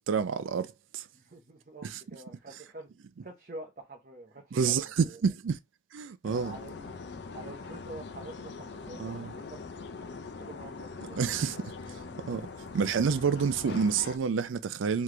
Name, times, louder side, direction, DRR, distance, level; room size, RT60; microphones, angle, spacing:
voice 1, 0.1-1.0 1.8-2.0 4.5-5.6 5.9-6.5 9.0-9.3 11.2-11.6 12.3-12.5 12.7-15.0, right 6 dB, 80° right, 0.4 m, -28 dB
voice 2, 1.1-2.9 3.2-5.2 6.3-7.0 7.3-9.6 10.4-11.4, right 2 dB, 45° right, 0.8 m, -47 dB
sound 1, 6.2-14.2, left 4 dB, 55° left, 0.5 m, -42 dB
3.3 x 3.1 x 3.7 m
head